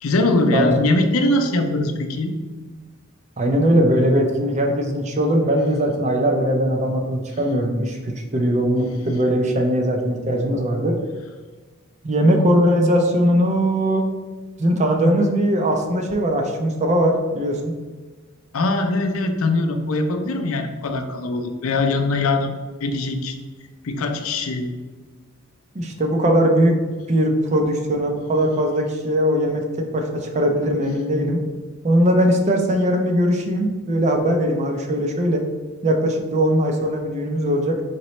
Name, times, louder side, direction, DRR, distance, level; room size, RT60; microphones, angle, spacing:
voice 1, 0.0-2.3 18.5-22.5 22.8-23.4 23.8-24.7, left 2 dB, 85° left, 5 dB, 0.5 m, -21 dB
voice 2, 0.5-0.9 3.4-11.0 12.0-14.1 14.6-17.8 25.7-26.8 27.1-31.4 31.8-35.4 35.8-37.8, equal, 35° right, 3 dB, 0.5 m, -20 dB
4.3 x 4.0 x 3.1 m, 1.4 s
head